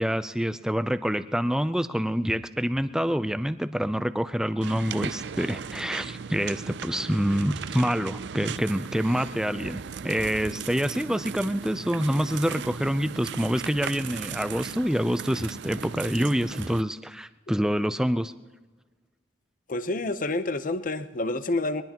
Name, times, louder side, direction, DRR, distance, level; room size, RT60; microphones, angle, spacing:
voice 1, 0.0-18.3, equal, 5° right, 12 dB, 0.4 m, -27 dB
sound 1, 4.6-16.8, right 6 dB, 65° right, 0.4 m, -37 dB
voice 2, 19.7-21.8, left 2 dB, 45° left, 11 dB, 0.8 m, -28 dB
22.5 x 20.0 x 3.0 m, 1.3 s
head